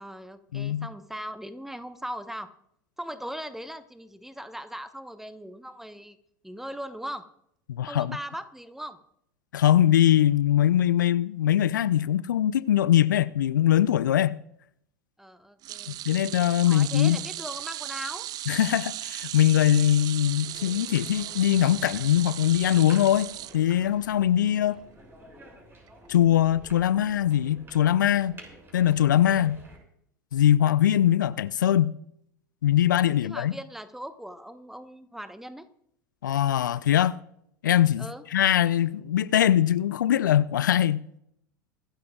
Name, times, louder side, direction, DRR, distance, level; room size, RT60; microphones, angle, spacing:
voice 1, 0.0-2.5 3.0-6.2 6.4-7.2 7.9-9.0 15.2-16.0 16.7-18.3 24.7-24.8 29.2-29.4 33.0-35.6 38.0-38.2, equal, 5° right, 1.1 m, -39 dB
voice 2, 0.5-0.9 7.7-8.2 9.5-14.4 15.9-17.2 18.5-24.8 26.1-28.4 28.7-29.6 30.3-31.9 32.6-33.5 36.2-37.2 37.6-38.1 38.3-41.2, left 11 dB, 75° left, 0.5 m, -22 dB
sound 1, 15.6-24.1 24.5-24.7 25.9-26.0, right 14 dB, 40° right, 0.5 m, -37 dB
sound 2, 20.4-29.8, right 1 dB, 20° right, 6.3 m, -50 dB
25.0 x 12.5 x 2.4 m
hypercardioid pair, 85°, 10 cm